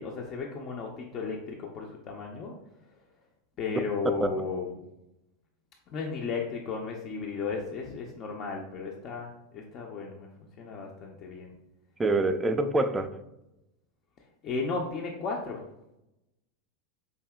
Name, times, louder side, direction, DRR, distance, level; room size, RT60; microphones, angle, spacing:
voice 1, 0.0-2.5 3.6-4.8 5.9-10.3 10.6-11.5 14.4-15.6, left 4 dB, 40° left, 0 dB, 0.5 m, -34 dB
voice 2, 12.0-13.1, right 2 dB, 15° right, 9 dB, 0.3 m, -25 dB
4.7 x 2.7 x 2.2 m, 0.89 s
hypercardioid pair, 90°, 0 cm